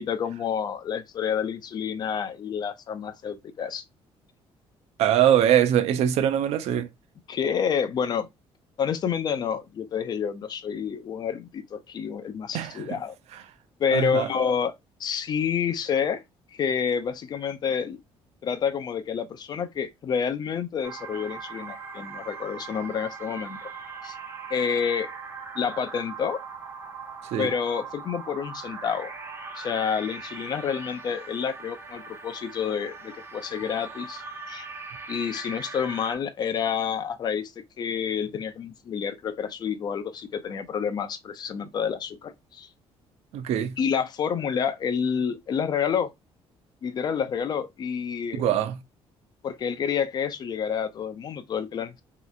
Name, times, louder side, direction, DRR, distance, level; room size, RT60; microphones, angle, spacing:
voice 1, 0.0-3.8 7.3-8.3 8.8-13.2 13.8-14.7 15.0-16.2 16.6-18.0 18.4-23.7 24.0-24.2 24.5-25.1 25.6-26.4 27.4-29.1 29.6-34.2 34.5-34.7 35.1-37.5 37.8-42.7 43.8-46.1 46.8-48.4 49.4-52.0, left 7 dB, 40° left, 0.5 m, -28 dB
voice 2, 5.0-6.9 12.5-12.7 13.9-14.3 27.3-27.5 43.3-43.7 48.4-48.8, right 10 dB, 75° right, 0.5 m, -22 dB
sound 1, 20.8-36.1, right 4 dB, 20° right, 0.7 m, -40 dB
3.1 x 2.8 x 2.4 m
cardioid pair, 155°, 11 cm